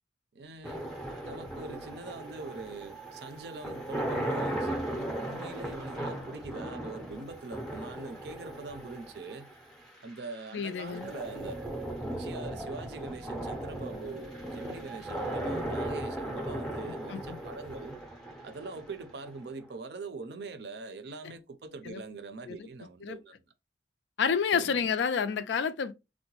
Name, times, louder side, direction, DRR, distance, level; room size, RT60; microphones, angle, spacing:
voice 1, 0.3-0.9 1.2-9.5 10.0-11.6 12.0-18.0 18.4-23.4 24.5-24.9, right 3 dB, 65° right, 0.5 m, -43 dB
sound 1, 0.6-19.7, right 1 dB, 5° left, 0.5 m, -37 dB
voice 2, 10.5-11.1 17.1-17.4 21.9-22.0 22.5-22.7 23.0-23.2 24.2-25.9, left 6 dB, 80° left, 0.4 m, -29 dB
3.7 x 2.1 x 2.9 m
head